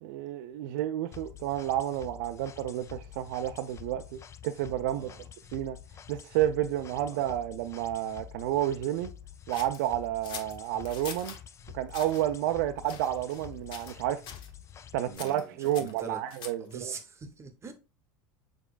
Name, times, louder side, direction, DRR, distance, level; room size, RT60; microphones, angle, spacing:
voice 1, 0.0-5.1 5.5-5.8 6.1-9.1 9.5-11.4 11.7-14.2 14.9-16.9, right 12 dB, 70° right, 0.4 m, -30 dB
sound 1, 1.1-15.2, left 9 dB, 30° left, 0.4 m, -48 dB
voice 2, 4.9-5.3 7.0-7.3 12.7-12.9 15.1-16.2 16.6-17.7, right 4 dB, 25° right, 0.9 m, -44 dB
sound 2, 9.5-11.4 11.9-12.2 12.8-13.5 13.7-14.0 14.2-14.5 15.1-16.7, left 7 dB, 50° left, 0.9 m, -44 dB
5.0 x 4.3 x 2.3 m
hypercardioid pair, 90°, 10 cm